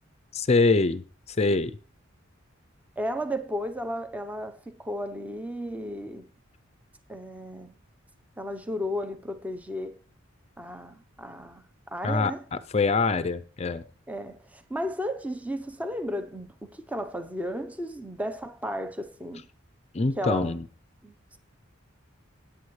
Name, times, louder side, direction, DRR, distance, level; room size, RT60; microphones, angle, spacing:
voice 1, 0.3-1.0 1.4-1.8 12.0-13.8 19.9-20.6, left 3 dB, 30° left, 0.5 m, -24 dB
voice 2, 3.0-6.3 7.1-7.8 8.4-10.0 10.6-12.4 14.1-19.5 20.2-20.6 21.0-21.4, equal, 5° right, 0.8 m, -34 dB
17.5 x 8.6 x 3.2 m
head